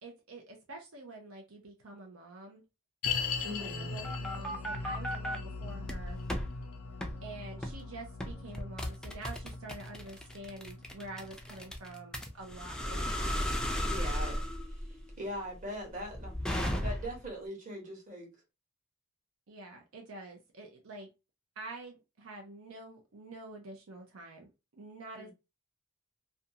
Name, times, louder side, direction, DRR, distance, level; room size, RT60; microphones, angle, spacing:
voice 1, 0.0-2.6 3.6-6.2 7.2-13.3 19.5-21.1 21.6-25.3, right 2 dB, 80° right, 0.7 m, -47 dB
sound 1, 3.0-14.3 14.6-14.7 15.3-15.4, left 4 dB, 75° left, 0.5 m, -41 dB
voice 2, 3.4-3.9 13.8-18.3 25.2-25.3, equal, 35° right, 1.1 m, -42 dB
sound 2, 3.6-5.4 5.8-6.5 7.0-7.2 7.6-7.8 8.2-17.3, equal, 5° left, 0.3 m, -35 dB
2.5 x 2.3 x 2.7 m
head